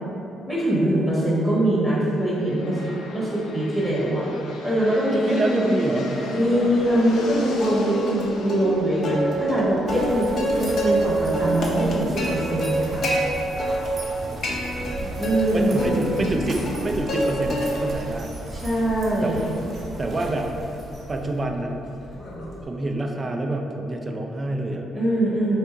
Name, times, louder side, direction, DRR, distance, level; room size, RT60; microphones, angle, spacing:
voice 1, 0.5-2.8 3.1-4.3 4.6-5.6 6.3-13.1 15.2-16.0 18.5-19.5 24.9-25.6, right 1 dB, 10° left, -8 dB, 1.1 m, -23 dB
sound 1, 2.1-11.9, left 2 dB, 85° left, 0.4 m, -38 dB
voice 2, 5.1-6.7 14.3-15.2 15.5-18.3 19.2-19.4 20.0-20.5 21.1-21.7 22.7-24.9, right 2 dB, 30° right, 3 dB, 0.4 m, -27 dB
Plucked string instrument, 7.6-8.2 8.5-8.6 9.0-11.1 11.3-13.2 13.6-14.1 14.4-15.4 15.8-17.2 17.5-18.0 18.4-22.6, equal, 55° left, 0.8 m, -27 dB
sound 2, 9.9-21.4, right 1 dB, 55° right, 1.0 m, -36 dB
3.4 x 2.7 x 4.5 m, 2.8 s
cardioid pair, 90°, 0 cm